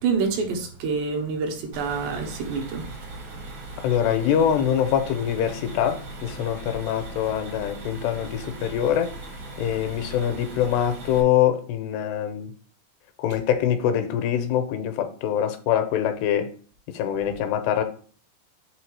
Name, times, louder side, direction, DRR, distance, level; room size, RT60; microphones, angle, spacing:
voice 1, 0.0-2.9, right 5 dB, 85° right, 3.4 m, -27 dB
sound 1, 1.7-11.2, right 2 dB, 65° right, 1.1 m, -39 dB
voice 2, 3.8-9.1 9.6-12.5 13.2-16.5 16.9-17.8, left 9 dB, 85° left, 2.9 m, -24 dB
7.9 x 3.5 x 4.7 m
omnidirectional pair, 4.7 m